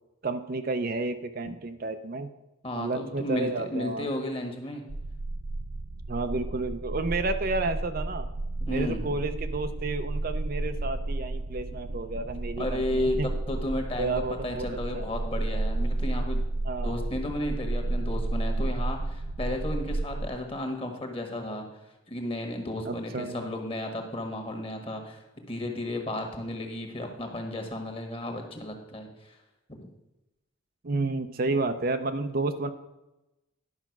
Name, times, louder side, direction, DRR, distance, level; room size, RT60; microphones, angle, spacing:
voice 1, 0.2-2.3 2.7-4.1 6.1-8.3 8.7-13.3 14.0-15.1 16.6-17.0 22.9-23.4 30.8-32.7, right 3 dB, 45° right, 8 dB, 0.5 m, -31 dB
voice 2, 2.6-4.8 8.6-9.1 12.6-13.2 13.5-16.4 16.8-21.6 22.1-29.4 29.7-29.9, left 1 dB, 25° left, 3 dB, 1.5 m, -33 dB
sound 1, 4.9-20.3, right 2 dB, 85° right, 0.7 m, -32 dB
11.0 x 5.8 x 5.9 m, 0.98 s
head